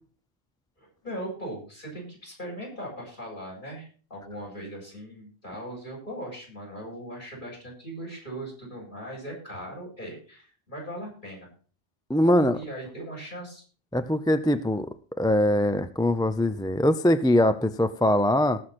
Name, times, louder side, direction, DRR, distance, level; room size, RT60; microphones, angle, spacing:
voice 1, 0.8-11.5 12.2-13.6, right 1 dB, 45° left, -1 dB, 8.3 m, -39 dB
voice 2, 12.1-12.6 13.9-14.9 15.2-18.6, left 1 dB, 5° left, 11 dB, 0.4 m, -22 dB
19.5 x 6.5 x 4.3 m, 0.40 s
omnidirectional pair, 1.2 m